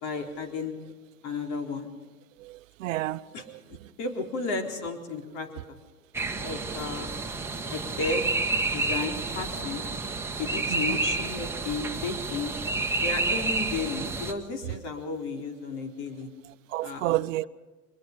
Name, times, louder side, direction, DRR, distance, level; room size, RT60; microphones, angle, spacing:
voice 1, 0.0-0.8 1.2-1.9 3.3-5.8 6.3-7.1 7.6-8.2 8.7-9.9 10.4-12.6 13.0-16.3 16.8-17.2, left 4 dB, 50° left, 5 dB, 4.0 m, -33 dB
voice 2, 2.4-3.2 3.5-3.6 10.7-11.0 16.7-17.5, right 17 dB, 60° right, 16 dB, 0.8 m, -30 dB
sound 1, 6.1-14.3, right 3 dB, 5° right, 1.3 m, -30 dB
23.5 x 21.5 x 5.2 m, 1.3 s
hypercardioid pair, 120°, 43 cm